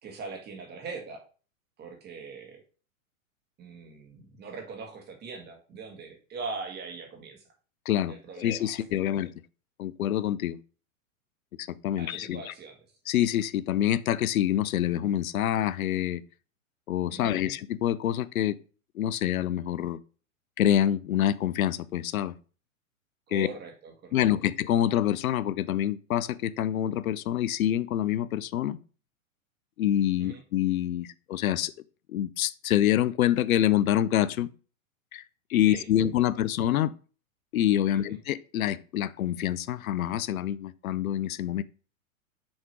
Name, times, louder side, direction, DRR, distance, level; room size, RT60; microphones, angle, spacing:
voice 1, 0.0-1.2 1.8-2.6 3.6-7.4 8.1-9.1 11.9-12.9 17.1-17.5 23.3-24.2 30.2-30.4 35.6-36.3 37.9-38.2, right 4 dB, 25° right, 1.7 m, -41 dB
voice 2, 7.9-9.3 9.8-10.6 11.6-12.5 13.1-16.2 16.9-18.6 19.0-20.0 20.6-22.3 23.3-23.5 24.1-28.8 29.8-31.7 32.1-34.5 35.1-35.2 35.5-36.9 37.5-41.6, left 11 dB, 80° left, 0.6 m, -26 dB
6.4 x 3.7 x 4.6 m
hypercardioid pair, 120°, 42 cm